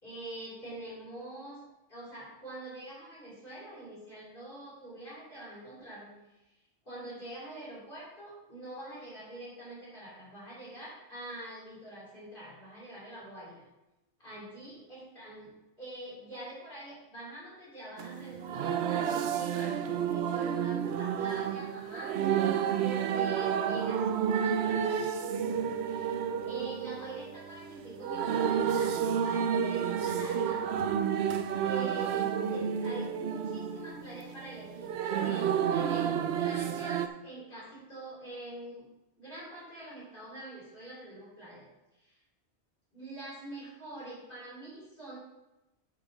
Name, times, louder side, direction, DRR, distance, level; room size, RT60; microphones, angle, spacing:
voice 1, 0.0-1.6 1.9-6.1 6.8-13.7 14.2-22.1 22.5-25.1 25.4-30.7 31.6-38.8 39.2-41.7 42.0-42.2 42.9-45.2, right 1 dB, 45° left, -8 dB, 3.9 m, -45 dB
sound 1, 18.0-37.1, right 8 dB, 70° right, 0.8 m, -30 dB
9.9 x 7.5 x 3.0 m, 0.96 s
omnidirectional pair, 1.2 m